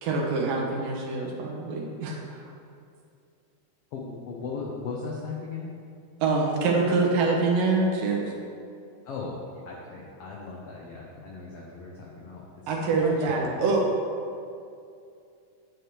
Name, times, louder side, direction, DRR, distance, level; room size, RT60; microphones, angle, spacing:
voice 1, 0.0-2.5 6.2-8.3 12.7-13.9, right 3 dB, 85° right, 0 dB, 2.8 m, -25 dB
voice 2, 3.9-5.7 9.0-13.6, left 4 dB, 80° left, -3 dB, 1.3 m, -37 dB
10.0 x 7.8 x 3.2 m, 2.4 s
omnidirectional pair, 3.8 m